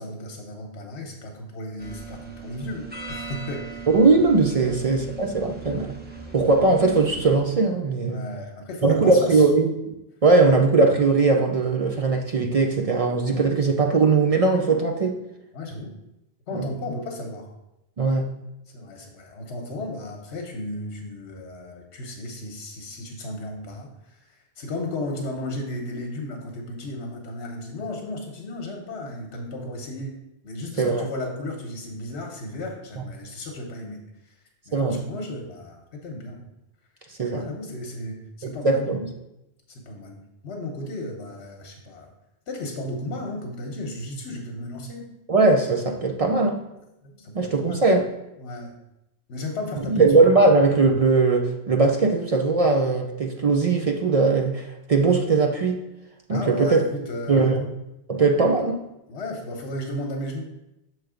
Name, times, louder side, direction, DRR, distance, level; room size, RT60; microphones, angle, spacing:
voice 1, 0.0-3.8 4.6-4.8 8.1-9.5 15.5-15.9 16.5-17.5 18.7-30.2 30.4-34.0 34.7-36.5 37.3-38.9 39.7-40.2 40.4-42.1 42.5-45.1 46.5-46.6 47.0-47.8 48.4-48.7 49.3-50.1 56.3-57.6 59.1-60.4, left 1 dB, 85° left, 2 dB, 1.1 m, -34 dB
sound 1, 1.8-7.4, right 4 dB, 10° right, 0.7 m, -39 dB
voice 2, 3.9-5.9 6.3-8.2 8.8-9.7 10.2-15.1 16.5-16.7 18.0-18.3 30.8-31.1 34.7-35.0 37.2-37.4 38.4-39.0 45.3-46.6 47.3-48.1 49.9-55.8 56.3-56.8 57.3-57.7 58.1-58.8, right 3 dB, 50° right, 2 dB, 0.4 m, -20 dB
6.7 x 3.1 x 4.9 m, 0.89 s
omnidirectional pair, 1.1 m